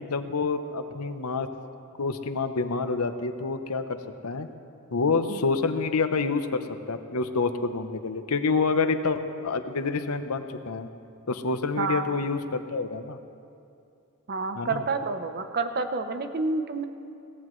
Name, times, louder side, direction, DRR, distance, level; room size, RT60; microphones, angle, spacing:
voice 1, 0.0-1.5 2.0-3.8 4.2-4.5 4.9-10.9 11.3-13.2 14.6-14.8, left 4 dB, 85° left, 9 dB, 0.8 m, -27 dB
voice 2, 14.3-16.8, right 3 dB, 45° right, 8 dB, 0.8 m, -29 dB
22.0 x 17.0 x 3.2 m, 2.5 s
head